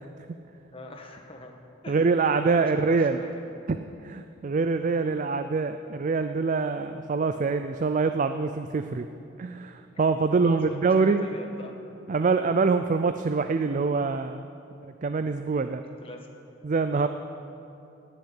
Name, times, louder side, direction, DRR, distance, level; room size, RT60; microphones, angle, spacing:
voice 1, 0.7-1.5 1.8-2.0 2.4-3.4 4.6-4.9 7.3-7.4 9.9-10.0 10.3-11.8 15.6-16.3 17.0-17.1, left 2 dB, 30° left, 3 dB, 1.3 m, -43 dB
voice 2, 1.9-3.2 3.7-9.1 9.4-11.3 12.1-14.5 14.8-15.8 16.6-17.1, right 4 dB, 40° right, 9 dB, 0.4 m, -25 dB
18.5 x 6.6 x 8.1 m, 2.8 s
head